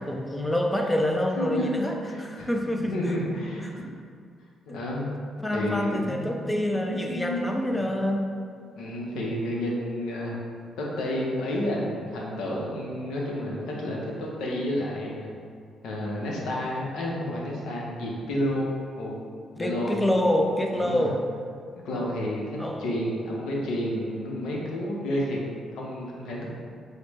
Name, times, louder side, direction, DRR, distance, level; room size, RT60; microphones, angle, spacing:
voice 1, 0.0-3.0 3.6-3.7 4.7-4.8 5.4-8.2 19.6-21.2 21.9-22.0 22.6-22.9, left 1 dB, 10° left, 2 dB, 0.4 m, -27 dB
voice 2, 1.4-3.9 4.7-5.2 5.5-7.8 8.8-10.4 10.8-15.3 15.8-19.1 19.6-20.0 20.7-21.1 21.8-25.4 25.7-26.5, left 1 dB, 85° left, -3 dB, 0.7 m, -30 dB
4.8 x 2.2 x 3.0 m, 2.2 s
cardioid pair, 90°, 0 cm